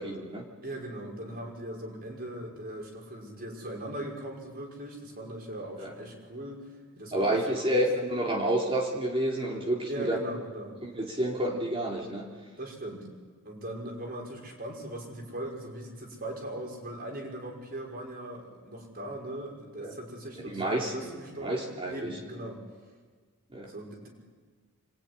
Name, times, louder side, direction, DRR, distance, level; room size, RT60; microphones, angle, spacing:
voice 1, 0.0-0.5 5.8-5.9 7.1-10.2 10.8-12.3 19.8-19.9 20.4-21.1 21.4-22.1 23.5-23.7, right 1 dB, 25° right, -1 dB, 3.5 m, -29 dB
voice 2, 0.6-6.6 7.0-7.7 9.9-10.8 12.6-13.1 13.4-22.6 23.6-24.1, right 1 dB, 40° right, 1 dB, 6.1 m, -39 dB
27.0 x 22.5 x 10.0 m, 1.5 s
head